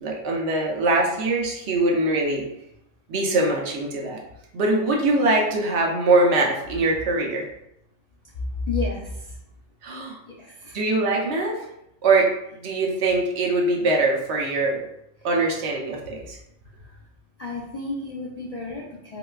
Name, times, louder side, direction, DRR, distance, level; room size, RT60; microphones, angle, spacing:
voice 1, 0.0-2.4 3.1-4.2 4.5-7.4 9.8-10.2 10.7-11.5 12.0-12.3 12.6-14.8 15.2-16.4, right 2 dB, 65° right, 0 dB, 0.8 m, -22 dB
voice 2, 8.7-9.0 10.4-10.8 17.4-19.2, left 3 dB, 80° left, -3 dB, 0.3 m, -30 dB
3.8 x 2.2 x 2.3 m, 0.79 s
omnidirectional pair, 1.3 m